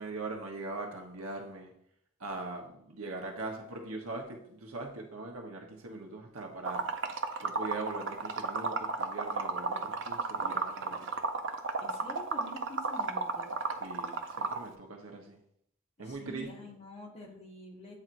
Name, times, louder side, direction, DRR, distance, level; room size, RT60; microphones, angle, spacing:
voice 1, 0.0-1.7 2.2-6.9 7.4-11.1 13.8-15.4 16.0-16.5, right 3 dB, 75° right, 2 dB, 1.1 m, -41 dB
Liquid, 6.7-14.6, right 4 dB, 60° right, 0.6 m, -33 dB
voice 2, 11.8-13.5 16.0-18.0, left 1 dB, 30° left, -1 dB, 1.2 m, -47 dB
8.7 x 4.4 x 2.6 m, 0.70 s
head